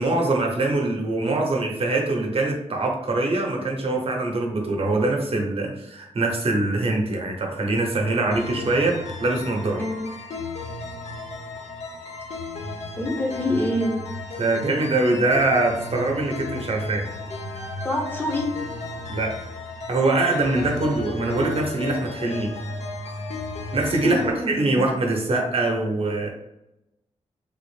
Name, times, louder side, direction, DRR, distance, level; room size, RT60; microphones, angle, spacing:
voice 1, 0.0-9.8 14.4-17.1 19.1-19.5 19.9-22.5 23.7-26.3, right 2 dB, 50° right, 0 dB, 0.8 m, -23 dB
sound 1, 8.3-24.3, left 2 dB, 65° left, 0.7 m, -34 dB
voice 2, 13.0-14.0 17.8-18.5 24.0-24.9, left 1 dB, 15° left, 0 dB, 0.8 m, -26 dB
3.5 x 2.5 x 3.3 m, 0.91 s
wide cardioid pair, 95°, 12 cm